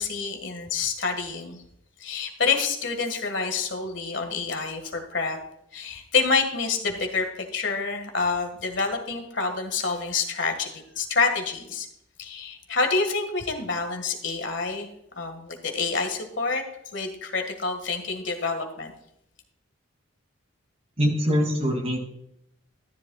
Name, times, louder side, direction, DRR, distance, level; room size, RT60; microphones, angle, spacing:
voice 1, 0.0-1.6 2.0-5.4 5.7-11.9 12.2-14.9 15.2-16.6 16.9-18.9, left 4 dB, 65° left, 5 dB, 1.8 m, -27 dB
voice 2, 21.0-22.0, equal, 30° right, 2 dB, 2.5 m, -23 dB
13.5 x 10.5 x 2.4 m, 0.77 s
head